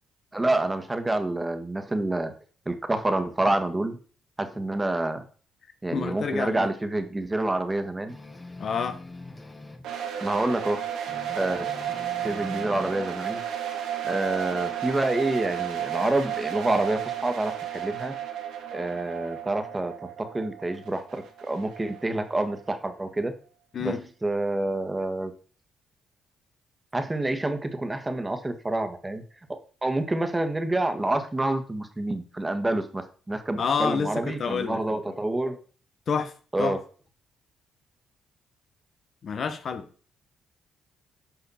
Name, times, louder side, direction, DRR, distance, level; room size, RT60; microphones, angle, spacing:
voice 1, 0.3-2.3 2.7-4.0 4.4-5.3 5.8-8.2 10.2-10.8 11.4-11.7 12.2-13.4 14.0-18.1 18.7-19.9 20.2-23.3 23.8-23.9 24.2-25.3 26.9-29.2 29.8-35.6 36.5-36.8, right 2 dB, 20° right, 1.6 m, -27 dB
voice 2, 5.9-6.7 8.6-9.0 23.7-24.0 33.6-34.8 36.1-36.3 36.6-36.8 39.2-39.9, left 6 dB, 55° left, 1.1 m, -28 dB
sound 1, 8.1-9.9 11.1-13.0, left 2 dB, 20° left, 1.6 m, -43 dB
sound 2, 9.8-22.7, right 10 dB, 85° right, 2.4 m, -33 dB
10.0 x 5.7 x 4.3 m
supercardioid pair, 65°, 0 cm